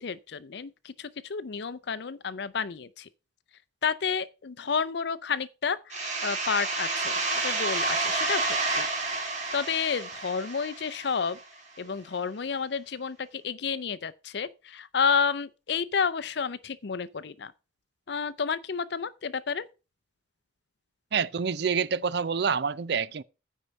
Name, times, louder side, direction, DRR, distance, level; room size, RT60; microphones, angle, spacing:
voice 1, 0.0-3.1 3.8-8.9 9.5-11.4 11.8-17.5 18.1-19.7, left 6 dB, 60° left, 0.5 m, -30 dB
sound 1, 5.9-11.4, right 3 dB, 40° right, 2.5 m, -30 dB
voice 2, 21.1-23.2, right 6 dB, 55° right, 0.5 m, -27 dB
9.8 x 4.6 x 6.3 m
head